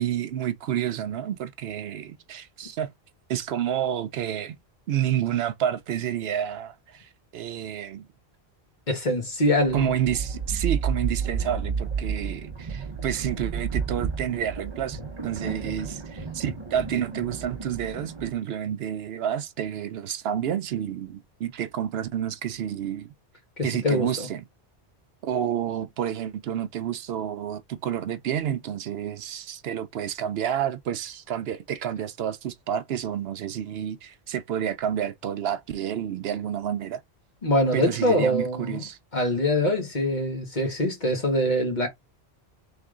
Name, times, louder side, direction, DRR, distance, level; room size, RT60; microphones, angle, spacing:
voice 1, 0.0-2.9 3.3-4.6 4.9-8.1 9.7-23.1 23.6-24.5 25.2-37.0 37.7-39.0, right 10 dB, 70° right, 0.8 m, -29 dB
voice 2, 8.9-9.9 23.6-24.3 37.4-38.8 39.1-41.9, left 1 dB, 45° left, 1.5 m, -24 dB
sound 1, 9.6-18.3, right 6 dB, 30° right, 0.8 m, -32 dB
3.5 x 3.3 x 3.6 m
omnidirectional pair, 1.1 m